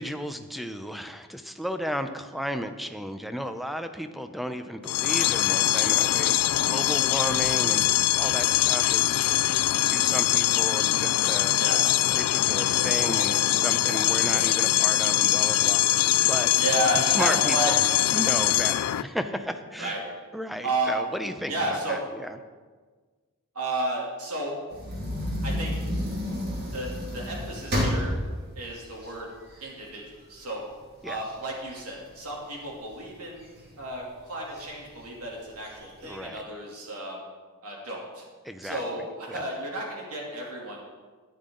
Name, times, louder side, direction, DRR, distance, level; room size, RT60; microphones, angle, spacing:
voice 1, 0.0-9.3 9.8-11.6 12.1-16.5 16.9-17.8 18.1-20.0 20.3-21.5 21.9-22.4 31.0-31.2 36.0-36.4 38.4-38.8 39.3-39.4, equal, ahead, 8 dB, 0.6 m, -34 dB
sound 1, 4.8-19.0, left 15 dB, 75° left, 0.3 m, -23 dB
voice 2, 16.6-17.7 19.8-20.0 20.6-21.1 21.5-22.0 23.5-24.6 25.4-25.9 26.7-28.1 28.5-29.3 29.6-30.6 31.0-37.2 37.6-38.2 38.6-40.8, right 1 dB, 80° right, -2 dB, 3.0 m, -32 dB
sound 2, 24.7-29.9 30.4-30.5 30.8-32.9 33.4-33.9 34.5-34.7 35.0-35.1 35.5-36.1, equal, 50° right, 2.6 m, -31 dB
13.5 x 10.0 x 3.9 m, 1.4 s
head